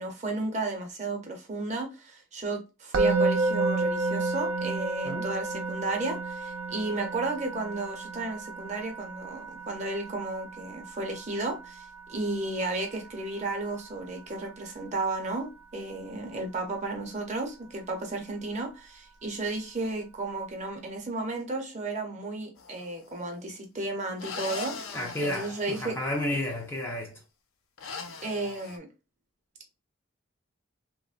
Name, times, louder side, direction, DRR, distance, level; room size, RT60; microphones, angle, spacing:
voice 1, 0.0-26.0 28.2-28.9, right 2 dB, 35° right, 0.6 m, -33 dB
Musical instrument, 2.9-14.0, right 3 dB, 80° right, 0.4 m, -31 dB
sound 1, 22.6-23.1 24.2-26.6 27.8-28.8, left 5 dB, 75° left, 0.4 m, -41 dB
voice 2, 24.9-27.2, left 1 dB, 10° left, 0.3 m, -32 dB
3.0 x 2.1 x 2.4 m
head